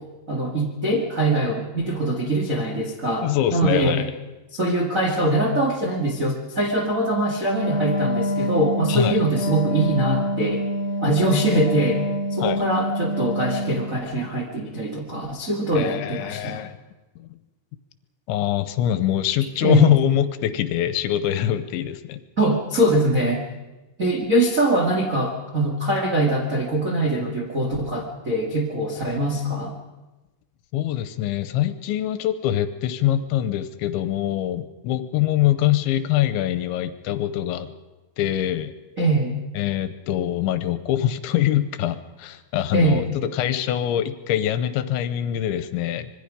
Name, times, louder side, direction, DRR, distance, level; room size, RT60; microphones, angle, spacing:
voice 1, 0.3-4.1 4.5-10.6 11.0-12.0 12.3-16.6 19.6-19.9 22.4-23.4 24.0-29.7 39.0-39.4 42.7-43.0, right 1 dB, 50° right, -1 dB, 0.9 m, -23 dB
voice 2, 3.2-4.1 8.9-9.2 12.4-12.6 15.7-16.7 17.2-17.3 18.3-22.2 30.7-37.7 38.2-38.7 39.5-46.1, left 12 dB, 85° left, 11 dB, 3.2 m, -23 dB
Wind instrument woodwind instrument, 7.5-14.0, equal, 40° left, 2.4 m, -26 dB
25.5 x 22.0 x 5.2 m, 1.1 s
omnidirectional pair, 5.3 m